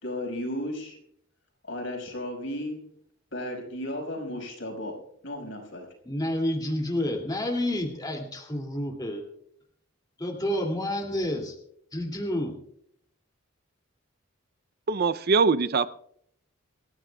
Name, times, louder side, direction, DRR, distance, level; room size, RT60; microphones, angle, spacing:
voice 1, 0.0-1.0 1.6-2.8 3.3-5.9, left 1 dB, 65° left, 2 dB, 5.4 m, -34 dB
voice 2, 6.0-9.2 10.2-11.5 11.9-12.5, left 1 dB, 20° left, 2 dB, 2.5 m, -29 dB
voice 3, 14.9-15.9, right 4 dB, 50° right, 14 dB, 0.5 m, -22 dB
26.5 x 15.0 x 2.3 m, 0.69 s
head